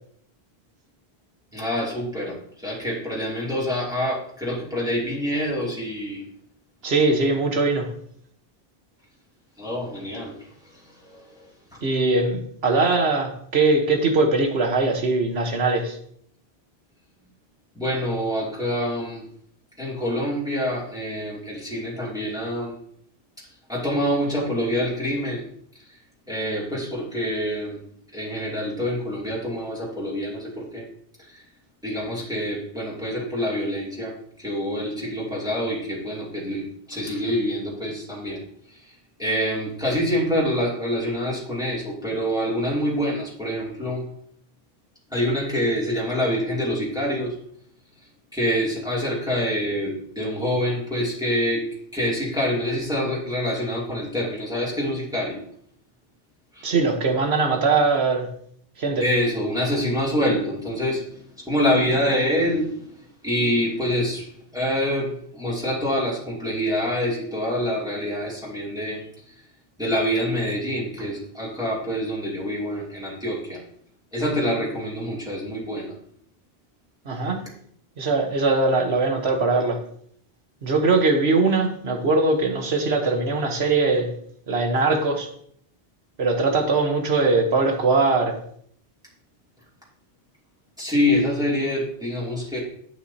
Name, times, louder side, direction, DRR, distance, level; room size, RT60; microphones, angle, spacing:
voice 1, 1.5-6.2 9.6-10.4 11.0-11.4 17.7-19.2 19.8-22.7 23.7-25.4 26.3-27.8 28.1-30.9 31.3-31.4 31.8-38.4 38.9-44.1 45.1-47.4 48.3-51.6 51.9-55.4 56.5-56.6 59.0-62.8 63.2-69.1 69.8-73.6 74.1-75.9 90.8-92.6, equal, 5° right, 2.7 m, -26 dB
voice 2, 6.8-7.9 11.8-16.0 56.6-58.3 58.8-59.1 77.0-77.5 78.0-79.8 80.6-84.1 84.5-85.3 86.2-88.4, right 3 dB, 80° right, 1.5 m, -21 dB
11.0 x 8.5 x 2.8 m
omnidirectional pair, 1.0 m